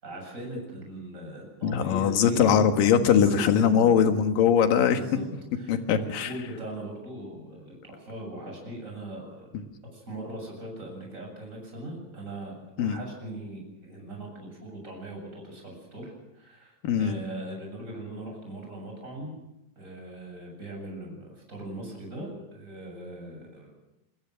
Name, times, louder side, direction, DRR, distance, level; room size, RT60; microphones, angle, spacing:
voice 1, 0.0-2.6 3.1-4.0 4.9-5.3 5.5-19.4 19.8-23.7, right 1 dB, 15° right, 1 dB, 8.0 m, -40 dB
voice 2, 1.6-5.0 5.7-6.3 12.8-13.0 16.8-17.2, left 8 dB, 60° left, 7 dB, 2.9 m, -21 dB
25.5 x 21.5 x 6.4 m, 0.91 s
omnidirectional pair, 5.0 m